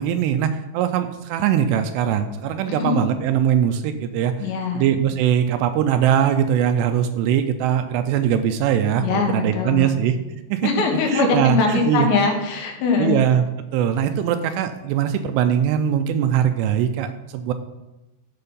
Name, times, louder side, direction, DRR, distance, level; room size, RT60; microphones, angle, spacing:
voice 1, 0.0-4.3 4.7-10.2 10.5-10.7 11.1-12.1 13.0-13.5 13.7-17.5, right 9 dB, 85° right, 7 dB, 2.6 m, -21 dB
voice 2, 2.7-3.0 4.4-4.9 9.0-10.0 10.6-13.2, left 5 dB, 85° left, 2 dB, 3.5 m, -22 dB
12.5 x 4.4 x 5.5 m, 1.0 s
omnidirectional pair, 4.9 m